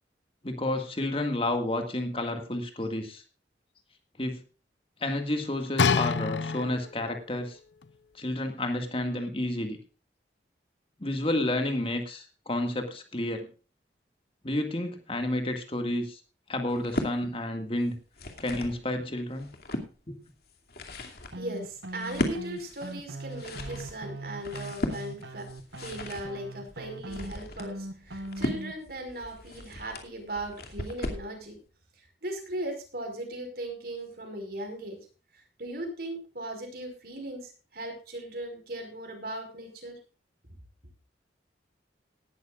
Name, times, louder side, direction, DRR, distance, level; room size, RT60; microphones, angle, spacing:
voice 1, 0.4-3.2 4.2-4.4 5.0-7.6 8.1-9.8 11.0-13.5 14.4-16.2 16.5-17.9 18.4-19.5 20.1-20.2, left 1 dB, 30° left, 5 dB, 1.9 m, -30 dB
sound 1, 5.8-7.1 7.8-7.9, left 5 dB, 75° left, 0.6 m, -26 dB
sound 2, 16.7-17.2 17.9-18.8 19.3-19.9 20.5-31.3, left 1 dB, 60° left, 2.5 m, -36 dB
voice 2, 21.3-25.5 25.8-31.6 32.2-35.0 35.3-39.9, right 1 dB, 55° right, 5 dB, 5.0 m, -38 dB
sound 3, 21.3-28.7, right 1 dB, 75° right, 1.3 m, -40 dB
18.0 x 12.5 x 2.4 m, 0.34 s
head